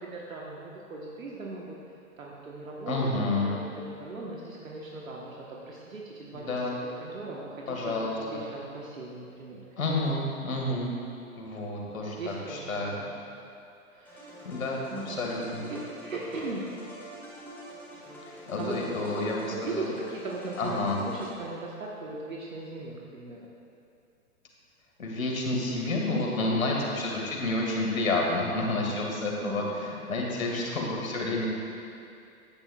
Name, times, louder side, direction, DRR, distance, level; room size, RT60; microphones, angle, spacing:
voice 1, 0.0-1.8 2.2-6.6 7.0-7.8 8.2-9.6 10.7-10.8 11.9-13.2 13.9-15.2 15.7-16.7 18.5-23.4 29.4-29.7, right 2 dB, 65° right, -3 dB, 1.4 m, -39 dB
voice 2, 2.9-3.5 6.3-6.8 7.7-8.4 9.8-10.9 11.4-13.0 14.4-15.7 18.2-19.9 20.6-21.0 25.0-31.5, left 2 dB, 65° left, -2 dB, 2.0 m, -30 dB
sound 1, 14.0-21.8, right 1 dB, 5° left, 1.8 m, -45 dB
15.5 x 10.0 x 2.4 m, 2.6 s
figure-of-eight pair, 115°, 43 cm